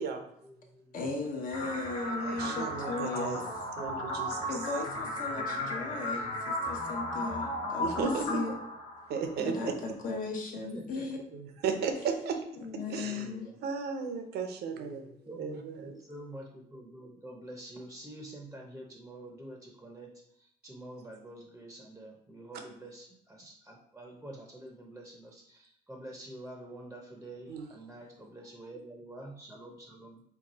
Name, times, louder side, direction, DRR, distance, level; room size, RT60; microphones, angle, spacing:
voice 1, 0.4-0.9 1.6-2.7 3.1-3.3 5.4-6.3 9.4-9.7 10.5-11.1 12.8-13.5 14.7-20.1 20.4-30.2, right 1 dB, 5° right, 0 dB, 0.7 m, -47 dB
voice 2, 0.9-3.5 4.5-8.6 9.4-11.2 12.6-13.5, left 3 dB, 55° left, 1 dB, 1.0 m, -37 dB
sound 1, 1.5-9.5, left 1 dB, 35° left, 1.5 m, -35 dB
voice 3, 2.2-3.4 3.8-4.4 7.8-8.3 9.1-9.7 11.3-12.4 12.9-13.2 13.6-15.1 15.4-15.9 27.5-27.7, right 5 dB, 70° right, 5 dB, 0.7 m, -34 dB
4.5 x 2.3 x 4.0 m, 0.71 s
cardioid pair, 110°, 17 cm